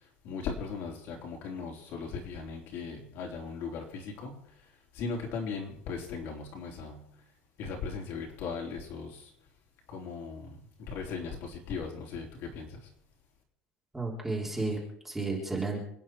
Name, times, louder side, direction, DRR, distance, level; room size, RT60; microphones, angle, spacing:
voice 1, 0.2-4.5 4.9-7.2 7.6-9.3 9.9-12.9, left 5 dB, 45° left, 0 dB, 4.0 m, -38 dB
voice 2, 13.9-15.8, right 3 dB, 5° right, -3 dB, 3.6 m, -33 dB
28.0 x 10.0 x 4.7 m, 0.71 s
cardioid pair, 180°, 5 cm